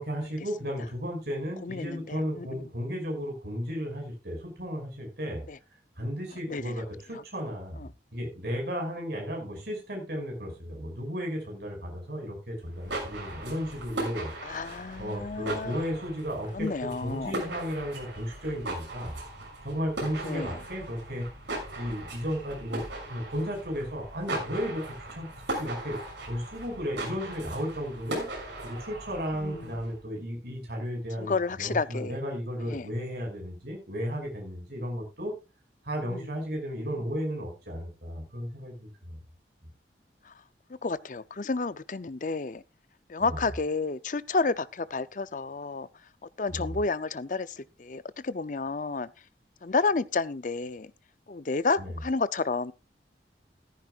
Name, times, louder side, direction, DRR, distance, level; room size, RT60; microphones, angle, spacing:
voice 1, 0.0-5.4 6.0-14.3 15.0-19.2 19.6-21.2 21.7-24.8 25.1-25.3 25.6-26.0 26.3-28.3 28.6-35.3 35.8-39.1 43.2-43.4 46.5-46.8 51.8-51.9, equal, 65° right, 5.8 m, -34 dB
voice 2, 1.6-2.7 5.5-5.6 6.5-6.8 7.1-7.2 7.8-7.9 14.4-15.8 16.5-17.3 20.2-20.6 29.4-29.7 31.2-32.2 32.7-32.9 36.1-36.3 40.3-40.4 40.8-42.6 43.1-45.9 46.2-49.1 49.6-50.9 51.3-52.7, left 4 dB, 45° left, 0.5 m, -31 dB
sound 1, 12.6-30.0, right 2 dB, 80° right, 6.9 m, -39 dB
14.5 x 13.5 x 2.4 m
head